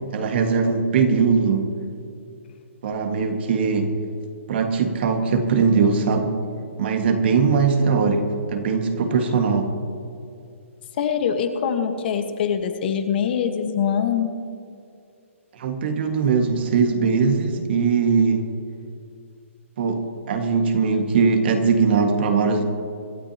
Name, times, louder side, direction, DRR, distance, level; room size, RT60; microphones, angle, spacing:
voice 1, 0.1-1.7 2.8-3.9 4.5-6.3 6.8-8.2 8.5-9.7 15.5-18.4 19.8-22.6, right 5 dB, 50° right, 5 dB, 1.8 m, -20 dB
voice 2, 7.8-8.2 11.0-14.3, left 7 dB, 45° left, 6 dB, 1.5 m, -24 dB
26.0 x 12.5 x 2.9 m, 2.5 s
hypercardioid pair, 150°, 7 cm